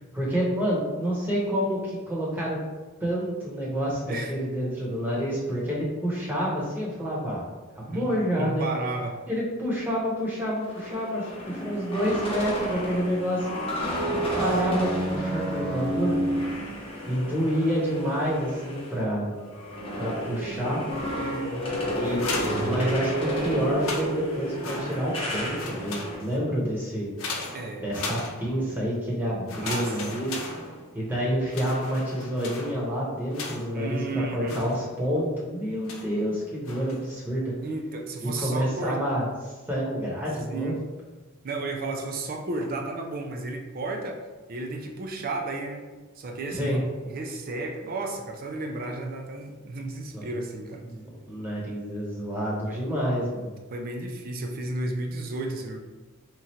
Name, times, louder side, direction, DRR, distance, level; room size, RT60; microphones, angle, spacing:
voice 1, 0.1-2.6 3.0-7.5 7.7-8.7 9.3-13.7 14.1-16.2 17.1-19.4 20.0-20.8 21.9-22.3 22.6-27.1 27.8-30.5 30.9-37.5 38.2-40.7 46.5-46.8 50.1-50.2 50.8-53.5, equal, 10° right, -5 dB, 0.9 m, -28 dB
voice 2, 8.3-9.2 14.1-14.4 21.2-21.8 27.5-27.9 29.6-29.9 33.7-34.6 37.6-39.0 40.5-40.8 41.4-44.2 44.5-45.9 46.2-50.9 52.7-52.8 53.7-55.8, right 2 dB, 45° right, 3 dB, 0.4 m, -33 dB
sound 1, 10.6-19.0 19.3-26.1, right 1 dB, 25° left, 0.7 m, -31 dB
sound 2, 22.0-23.3 23.7-25.3 25.5-26.5 27.2-28.8 29.5-31.1 31.5-33.9 34.5-35.2 35.9-36.2 36.6-37.1, left 3 dB, 70° left, 0.6 m, -37 dB
3.0 x 2.4 x 4.2 m, 1.3 s
head